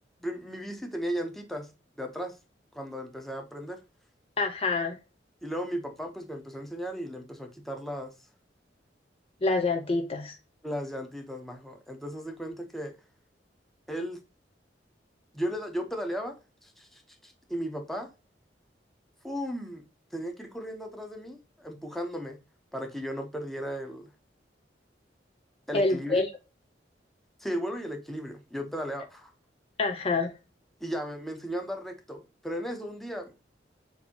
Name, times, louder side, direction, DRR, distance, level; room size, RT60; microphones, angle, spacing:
voice 1, 0.2-1.7 2.0-2.3 2.7-3.8 5.4-8.1 10.6-12.9 13.9-14.2 15.3-16.3 16.6-18.1 19.2-19.8 20.1-22.4 22.7-24.1 25.7-26.3 27.4-29.3 30.8-33.3, equal, ahead, 0.8 m, -35 dB
voice 2, 4.4-5.0 9.4-10.4 25.7-26.3 29.8-30.3, left 3 dB, 35° left, 0.5 m, -26 dB
7.0 x 2.7 x 2.8 m
head